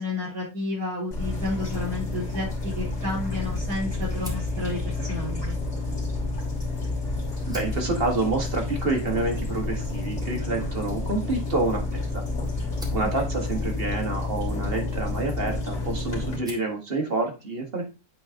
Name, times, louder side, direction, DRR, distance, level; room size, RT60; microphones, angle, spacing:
voice 1, 0.0-5.6 13.1-13.2, left 2 dB, 75° right, -9 dB, 5.2 m, -31 dB
sound 1, 1.1-16.4, left 2 dB, 50° left, 2.9 m, -30 dB
Fire, 4.1-6.8 7.2-15.9 16.2-16.8, right 1 dB, ahead, 1.8 m, -48 dB
voice 2, 7.5-12.2 12.9-17.9, right 2 dB, 35° right, 2 dB, 1.7 m, -28 dB
8.7 x 4.0 x 3.7 m, 0.29 s
omnidirectional pair, 1.7 m